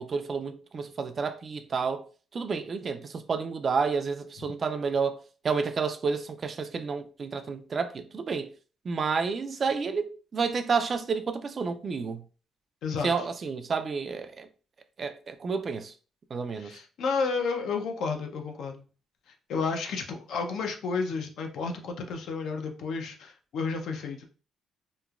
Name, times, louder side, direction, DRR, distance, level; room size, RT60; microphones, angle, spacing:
voice 1, 0.0-2.1 2.3-8.5 8.9-12.2 13.0-14.5 15.0-15.9 16.3-16.7, right 5 dB, 45° right, 0.3 m, -30 dB
voice 2, 12.8-13.3 16.6-18.8 19.5-24.2, left 4 dB, 75° left, 0.5 m, -31 dB
3.0 x 2.1 x 2.3 m
cardioid pair, 90°, 0 cm